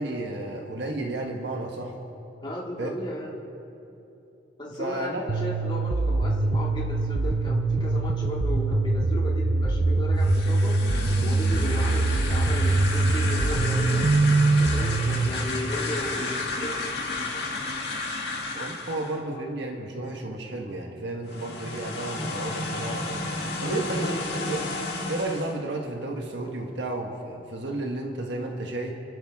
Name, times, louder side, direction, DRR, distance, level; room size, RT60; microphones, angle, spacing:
voice 1, 0.0-2.0 2.8-3.0 4.7-5.3 18.5-23.2 23.6-24.2 24.5-24.7 25.1-28.9, right 2 dB, 65° right, 1 dB, 1.5 m, -32 dB
voice 2, 2.4-3.3 4.6-10.7 11.2-14.1 14.6-16.4 16.6-17.0 18.9-19.0 23.6-24.2, left 1 dB, 25° left, -4 dB, 2.4 m, -35 dB
sound 1, 5.3-15.3, right 2 dB, 85° right, 0.7 m, -23 dB
sound 2, 10.1-19.2 21.2-25.6, left 2 dB, 55° left, 2.3 m, -32 dB
30.0 x 12.0 x 3.6 m, 2.9 s
head